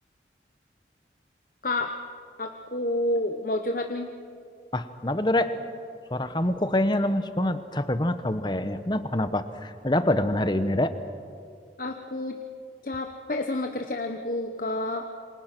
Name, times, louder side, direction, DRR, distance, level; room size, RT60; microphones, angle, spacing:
voice 1, 2.4-4.1 11.8-12.3 12.8-15.0, left 1 dB, 50° left, 4 dB, 1.1 m, -29 dB
voice 2, 4.7-5.6 6.1-10.9, left 1 dB, 25° left, 10 dB, 1.1 m, -25 dB
28.0 x 25.5 x 6.1 m, 2.3 s
head